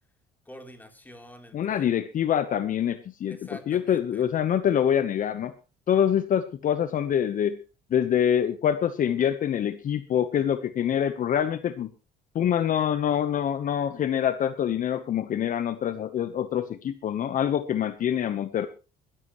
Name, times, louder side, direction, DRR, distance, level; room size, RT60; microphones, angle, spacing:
voice 1, 0.5-1.9 3.3-4.3, left 1 dB, 10° left, 5 dB, 3.5 m, -46 dB
voice 2, 1.5-3.4 3.7-5.5 5.9-7.6 7.9-11.9 12.3-18.7, left 9 dB, 50° left, 12 dB, 1.1 m, -25 dB
21.0 x 13.5 x 3.1 m, 0.31 s
cardioid pair, 110°, 17 cm